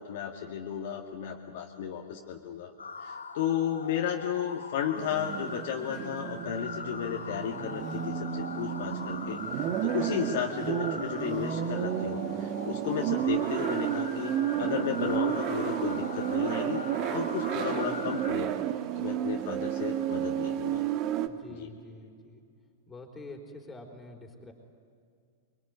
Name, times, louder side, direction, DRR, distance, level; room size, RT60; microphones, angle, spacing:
voice 1, 0.0-2.7 3.0-14.3 14.6-18.5 19.0-20.8 21.6-21.7, left 9 dB, 55° left, 2 dB, 1.9 m, -34 dB
sound 1, 2.8-18.3, left 4 dB, 80° left, 1.8 m, -41 dB
sound 2, 5.0-21.3, right 11 dB, 40° right, 1.4 m, -32 dB
voice 2, 21.2-22.4 22.9-24.5, left 2 dB, 15° left, 2 dB, 4.3 m, -46 dB
24.0 x 23.0 x 9.5 m, 2.3 s
figure-of-eight pair, 100°, 0 cm